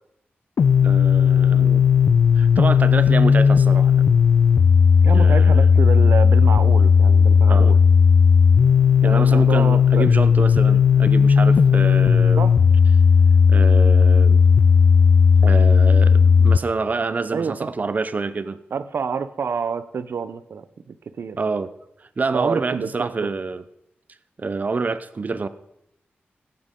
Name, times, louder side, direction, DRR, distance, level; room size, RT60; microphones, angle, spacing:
sound 1, 0.6-16.6, left 6 dB, 70° left, 0.3 m, -15 dB
voice 1, 0.8-1.9 2.4-3.9 5.1-5.7 7.5-7.7 9.0-12.5 13.5-14.4 15.4-18.6 21.4-21.7 22.0-23.6 24.4-25.5, right 4 dB, 45° right, 13 dB, 0.7 m, -27 dB
voice 2, 5.0-7.8 9.0-10.1 12.4-12.6 17.3-17.7 18.7-21.4 22.3-23.1, right 6 dB, 75° right, 12 dB, 0.7 m, -28 dB
17.0 x 8.7 x 3.7 m, 0.80 s
wide cardioid pair, 110°, 4 cm